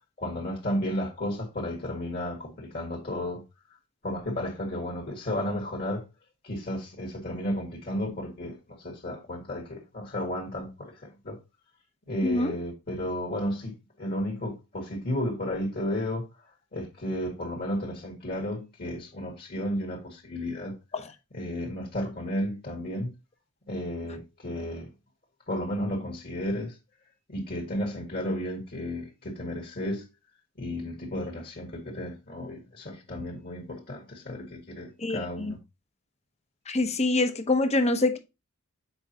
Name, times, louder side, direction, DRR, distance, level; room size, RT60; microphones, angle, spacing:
voice 1, 0.2-3.4 4.0-6.0 6.4-11.4 12.1-16.3 16.7-20.7 21.3-23.1 23.7-24.9 25.5-26.8 27.3-30.1 30.6-35.6, left 1 dB, 50° left, 1.8 m, -33 dB
voice 2, 35.0-35.5 36.7-38.2, left 2 dB, 30° left, 0.8 m, -25 dB
7.0 x 4.9 x 2.8 m
head